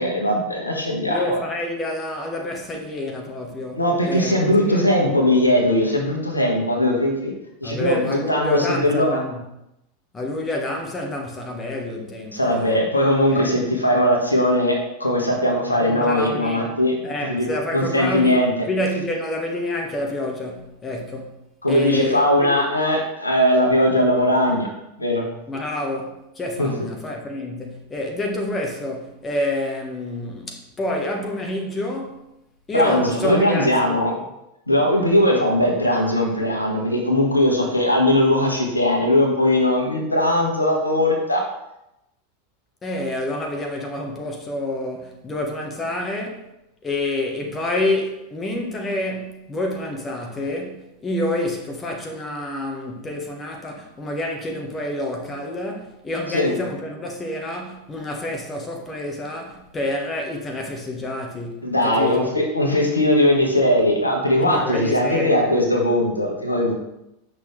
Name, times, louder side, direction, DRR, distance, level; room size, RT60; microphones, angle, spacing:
voice 1, 0.0-1.2 3.8-7.3 7.6-9.2 12.3-18.5 21.6-24.7 25.0-25.3 26.6-26.9 32.7-34.1 34.7-41.4 56.3-56.6 61.6-66.7, left 1 dB, 85° left, 1.4 m, -19 dB
voice 2, 1.1-4.8 7.6-9.4 10.1-12.8 13.3-13.5 15.8-16.6 17.0-21.4 21.7-22.7 25.5-32.2 32.7-34.0 42.8-46.5 46.8-62.3 64.4-65.4, left 1 dB, 20° left, 1.4 m, -28 dB
8.2 x 6.0 x 3.3 m
figure-of-eight pair, 85°, 0 cm